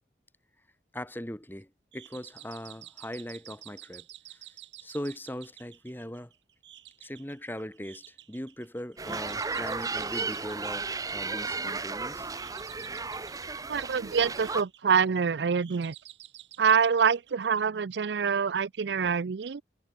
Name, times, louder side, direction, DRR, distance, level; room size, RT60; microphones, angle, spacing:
voice 1, 0.9-4.1 4.3-6.3 7.0-12.3, equal, 10° left, 2.6 m, -40 dB
sound 1, 1.9-18.0, right 14 dB, 90° right, 8.0 m, -51 dB
sound 2, 9.0-14.6, right 4 dB, 20° right, 0.9 m, -34 dB
voice 2, 13.7-15.9 16.6-19.6, right 6 dB, 75° right, 0.5 m, -26 dB
head